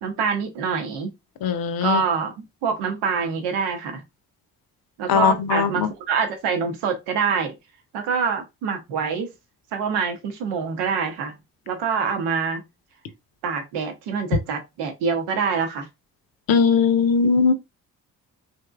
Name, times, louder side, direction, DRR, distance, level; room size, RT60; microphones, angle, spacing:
voice 1, 0.0-1.1 1.8-4.0 5.0-7.5 7.9-9.3 9.7-11.3 11.7-12.6 13.4-15.9, right 6 dB, 80° right, 0.7 m, -25 dB
voice 2, 1.4-2.0 5.1-5.9 16.5-17.5, left 6 dB, 60° left, 0.7 m, -19 dB
3.4 x 2.7 x 2.3 m
hypercardioid pair, 45°, 39 cm